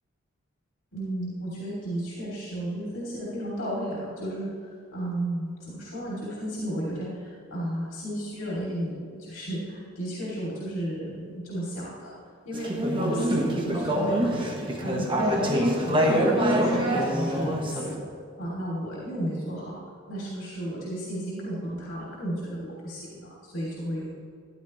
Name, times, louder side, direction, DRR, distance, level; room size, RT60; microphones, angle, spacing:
voice 1, 0.9-4.5 4.9-12.1 12.4-12.7 13.0-14.4 14.8-15.5 15.8-16.3 16.6-18.0 18.4-19.8 20.1-24.1, right 1 dB, 85° left, -7 dB, 3.1 m, -33 dB
Conversation / Chatter, 12.5-17.9, equal, 25° right, 1.4 m, -25 dB
14.5 x 11.0 x 3.2 m, 2.3 s
head